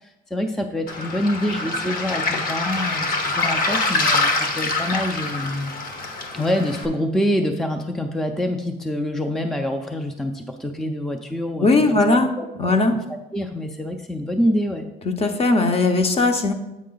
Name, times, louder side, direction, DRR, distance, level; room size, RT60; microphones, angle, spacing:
voice 1, 0.0-5.7 6.3-12.0 12.4-12.8 13.3-14.9, left 1 dB, 5° left, 4 dB, 0.4 m, -26 dB
Waves surf, 0.9-6.9, left 3 dB, 55° left, 1.1 m, -25 dB
voice 2, 11.6-12.3 12.6-13.0 15.0-16.5, left 3 dB, 35° left, 6 dB, 0.8 m, -18 dB
8.4 x 4.7 x 3.9 m, 0.96 s
cardioid pair, 110°, 17 cm